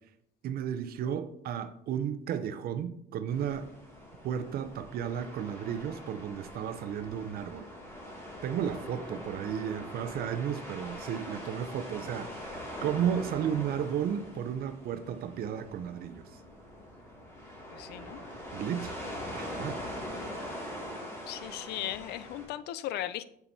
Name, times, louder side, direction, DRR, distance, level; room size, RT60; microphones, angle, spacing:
voice 1, 0.4-3.7 4.2-7.7 8.4-16.2 18.5-18.9 19.3-19.8, right 9 dB, 65° right, 11 dB, 0.6 m, -33 dB
sound 1, 3.3-22.5, equal, 15° left, 2.3 m, -43 dB
voice 2, 17.7-18.2 21.3-23.2, left 13 dB, 75° left, 15 dB, 0.4 m, -37 dB
7.1 x 6.9 x 2.7 m, 0.74 s
cardioid pair, 110°, 17 cm